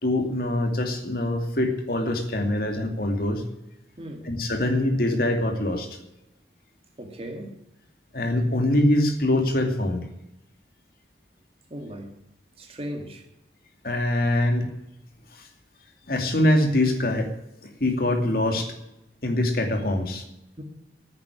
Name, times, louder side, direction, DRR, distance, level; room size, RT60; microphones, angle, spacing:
voice 1, 0.0-3.4 4.3-5.9 8.1-10.1 13.8-14.7 15.3-15.5 16.1-17.3 17.6-18.7 19.2-20.2, left 1 dB, 55° left, 2.5 m, -24 dB
voice 2, 4.0-4.3 7.0-7.6 11.7-12.1 12.6-13.2 20.6-20.7, equal, 35° right, 2.3 m, -37 dB
9.9 x 9.9 x 9.9 m
head